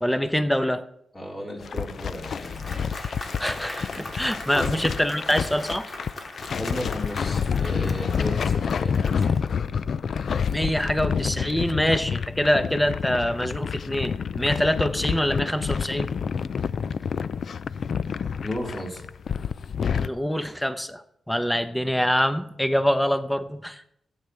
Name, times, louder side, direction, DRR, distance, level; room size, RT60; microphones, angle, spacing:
voice 1, 0.0-0.8 3.4-5.9 10.5-16.1 20.0-23.8, equal, 5° left, 10 dB, 0.8 m, -25 dB
voice 2, 1.1-3.2 4.5-4.7 6.6-9.5 18.4-19.0, equal, 25° left, -2 dB, 4.2 m, -34 dB
sound 1, 1.6-20.1, left 6 dB, 60° left, 0.3 m, -28 dB
Applause, 1.7-9.7, left 2 dB, 40° left, 2.1 m, -40 dB
17.0 x 8.3 x 3.3 m, 0.73 s
cardioid pair, 80°, 0 cm